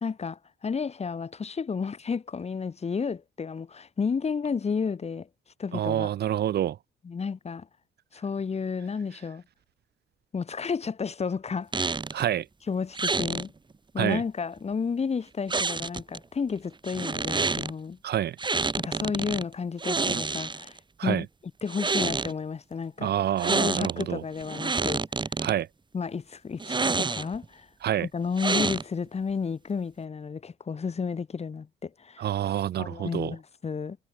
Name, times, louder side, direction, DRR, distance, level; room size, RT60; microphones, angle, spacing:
voice 1, 0.0-5.3 5.6-6.1 7.0-7.7 8.1-9.4 10.3-11.7 12.7-13.5 13.9-18.0 18.8-21.3 21.6-23.1 23.5-25.0 25.9-27.7 28.0-32.2 32.8-34.0, left 5 dB, 35° left, 1.2 m, -32 dB
voice 2, 5.7-6.8 12.1-12.5 14.0-14.2 18.0-18.4 21.0-21.2 23.0-24.2 25.4-25.7 27.8-28.1 32.2-33.3, right 11 dB, 55° right, 0.5 m, -27 dB
sound 1, 11.7-12.2 12.9-13.5 15.5-16.2 16.8-17.7 18.4-19.4 19.8-20.8 21.6-22.3 23.4-24.0 24.4-25.5 26.6-27.4 28.4-29.1, right 4 dB, 25° right, 1.5 m, -28 dB
cardioid pair, 90°, 20 cm